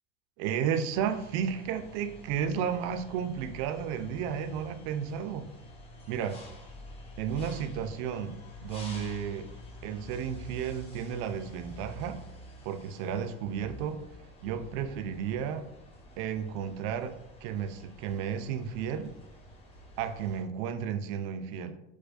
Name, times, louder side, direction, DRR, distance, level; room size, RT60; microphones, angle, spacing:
voice 1, 0.4-5.5 6.1-6.4 7.2-9.5 9.8-12.2 12.6-14.0 14.4-15.7 16.2-17.1 17.4-19.1 20.0-21.8, right 8 dB, 65° right, 9 dB, 0.4 m, -33 dB
sound 1, 0.9-20.4, equal, 15° left, 0.5 m, -48 dB
4.7 x 2.1 x 2.4 m, 0.86 s
supercardioid pair, 140°, 34 cm